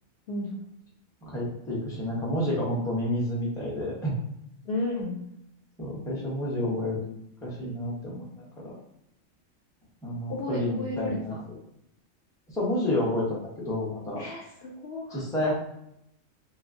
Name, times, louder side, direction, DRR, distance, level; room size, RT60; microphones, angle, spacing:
voice 1, 1.2-4.1 5.8-7.1 7.4-8.3 8.6-8.7 10.0-11.3 12.5-14.2 15.1-15.5, left 1 dB, 5° left, -5 dB, 0.6 m, -29 dB
voice 2, 4.6-5.2 10.3-11.4 14.2-15.3, left 2 dB, 60° left, -3 dB, 0.7 m, -33 dB
2.9 x 2.3 x 2.5 m, 0.77 s
omnidirectional pair, 1.4 m